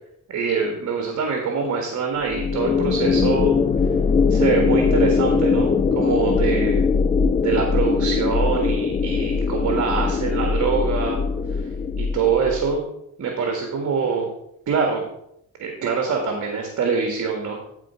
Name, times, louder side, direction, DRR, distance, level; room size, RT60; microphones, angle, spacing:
voice 1, 0.3-3.6 4.3-6.8 7.4-11.2 11.5-11.6 12.0-12.8 13.2-14.3 14.7-15.1 15.6-17.6, right 5 dB, 60° right, 2 dB, 1.8 m, -24 dB
sound 1, 2.3-12.7, left 5 dB, 25° left, 0.4 m, -21 dB
13.5 x 4.6 x 4.4 m, 0.75 s
cardioid pair, 90°, 30 cm